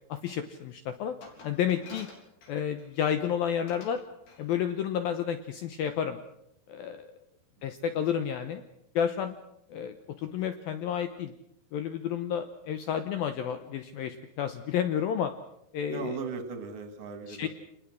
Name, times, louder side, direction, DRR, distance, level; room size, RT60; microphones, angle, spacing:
voice 1, 0.1-1.2 1.4-2.1 2.5-4.0 4.4-6.2 6.7-7.1 7.6-8.6 9.0-9.4 9.7-11.3 11.7-15.3 15.7-16.1 17.3-17.5, left 8 dB, 85° left, 9 dB, 2.1 m, -31 dB
Glass, 1.2-3.0 3.7-4.0 4.3-4.5, left 3 dB, 60° left, 5.8 m, -50 dB
voice 2, 15.9-17.5, right 5 dB, 45° right, 8 dB, 2.3 m, -38 dB
28.0 x 20.5 x 6.3 m, 0.80 s
omnidirectional pair, 5.5 m